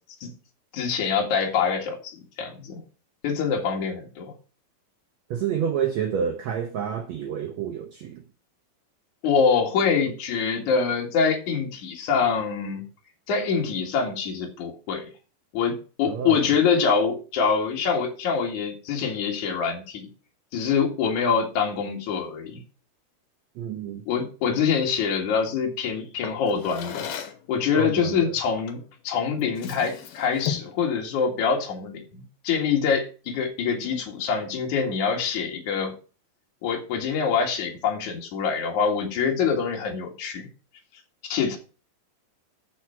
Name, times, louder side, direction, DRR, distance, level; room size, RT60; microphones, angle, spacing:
voice 1, 0.7-2.8 3.2-4.3 9.2-12.8 13.3-15.1 15.5-20.1 20.5-22.6 24.1-27.1 27.5-35.9 36.6-40.5 41.2-41.6, left 6 dB, 60° left, 3.2 m, -25 dB
voice 2, 5.3-8.2 16.1-16.4 23.6-24.0 27.8-28.3, right 8 dB, 80° right, 1.5 m, -28 dB
Drawer open or close, 26.2-27.5 28.7-28.9 29.3-30.8, left 9 dB, 80° left, 2.9 m, -35 dB
13.5 x 4.8 x 4.5 m
omnidirectional pair, 4.2 m